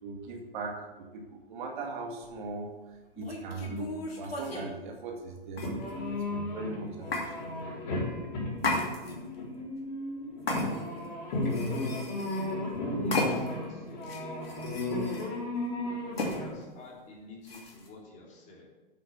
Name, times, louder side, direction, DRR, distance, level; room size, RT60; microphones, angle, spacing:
voice 1, 0.0-5.7 6.3-8.1, right 3 dB, 55° right, 1 dB, 2.1 m, -40 dB
sound 1, 2.2-2.4 3.2-4.7 5.5-6.1 7.1-7.3 8.6-9.3 10.5-11.1 11.4-12.5 13.1-13.6 14.0-15.3 16.2-16.4 17.4-17.9, left 2 dB, 85° left, 2.8 m, -34 dB
sound 2, 5.6-16.5, left 2 dB, 55° left, 4.3 m, -34 dB
voice 2, 13.0-14.6 16.2-18.7, left 2 dB, 25° left, -2 dB, 3.2 m, -49 dB
8.6 x 7.7 x 6.7 m, 1.2 s
hypercardioid pair, 115°, 29 cm